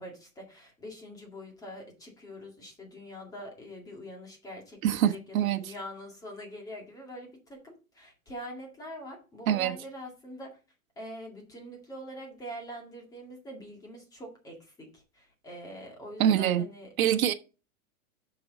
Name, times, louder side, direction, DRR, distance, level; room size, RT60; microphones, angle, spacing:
voice 1, 0.0-10.6 11.0-16.9, equal, 10° left, 2.1 m, -44 dB
voice 2, 4.8-5.6 9.5-9.7 16.2-16.6 17.0-17.3, right 10 dB, 75° right, 1.2 m, -24 dB
6.6 x 6.2 x 5.2 m
supercardioid pair, 165°, 42 cm